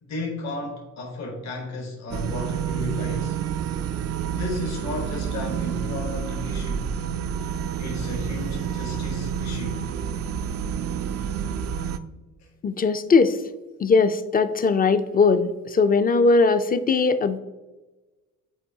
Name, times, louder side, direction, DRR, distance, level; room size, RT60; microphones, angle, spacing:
voice 1, 0.0-3.4 4.4-7.0 7.7-9.9, left 2 dB, 60° left, 0 dB, 1.4 m, -33 dB
sound 1, 2.1-12.0, right 7 dB, 55° right, 0.4 m, -29 dB
voice 2, 12.6-13.4 13.8-17.4, left 4 dB, 30° left, 11 dB, 0.5 m, -20 dB
8.2 x 4.4 x 2.8 m, 1.1 s
cardioid pair, 90°, 30 cm